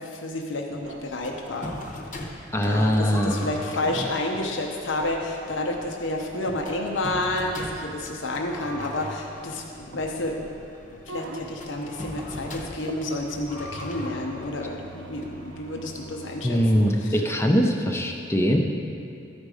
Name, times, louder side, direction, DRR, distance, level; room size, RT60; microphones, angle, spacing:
voice 1, 0.0-1.8 2.6-10.4 11.1-17.2, left 2 dB, 85° left, 2 dB, 0.8 m, -30 dB
sound 1, 0.7-17.1, right 2 dB, 85° right, 0.7 m, -45 dB
sound 2, 1.2-15.9, left 1 dB, 45° left, 0.9 m, -40 dB
voice 2, 2.5-3.5 16.4-18.6, equal, 15° left, 2 dB, 0.6 m, -22 dB
13.0 x 5.2 x 4.9 m, 2.6 s
head